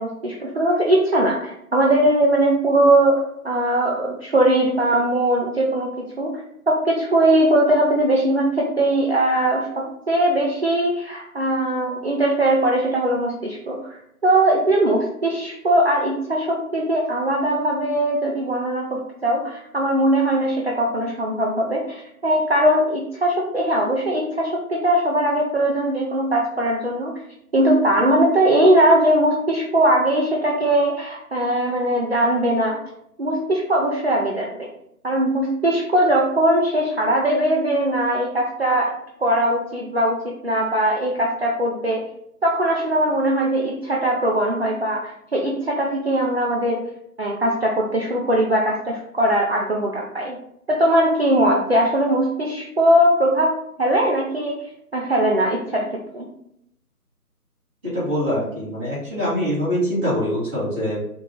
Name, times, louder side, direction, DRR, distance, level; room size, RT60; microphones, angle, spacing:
voice 1, 0.0-27.2 27.5-32.8 33.2-34.7 35.0-42.1 42.4-46.8 47.2-50.4 50.7-54.7 54.9-56.3, right 1 dB, 45° right, -2 dB, 0.5 m, -20 dB
voice 2, 57.8-61.0, equal, 10° right, -14 dB, 1.1 m, -24 dB
3.6 x 2.9 x 3.6 m, 0.75 s
figure-of-eight pair, 160°, 46 cm